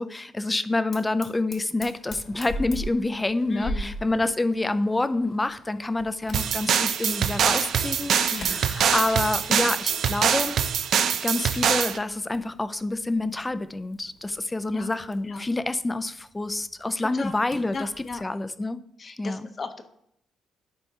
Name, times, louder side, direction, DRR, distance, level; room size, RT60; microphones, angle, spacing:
voice 1, 0.0-10.6 11.2-17.9 18.2-18.8 19.2-19.5, left 2 dB, 15° left, 13 dB, 0.4 m, -27 dB
Fire, 0.9-18.3, left 1 dB, 60° left, 1.4 m, -42 dB
voice 2, 2.6-2.9 3.5-4.0 8.3-8.7 14.7-14.9 15.2-15.5 17.0-17.4 17.7-18.2 19.0-19.8, left 4 dB, 40° left, 8 dB, 0.8 m, -36 dB
sound 1, 6.3-12.0, right 8 dB, 70° right, 0.4 m, -24 dB
10.5 x 4.3 x 2.8 m, 0.72 s
cardioid pair, 90°, 0 cm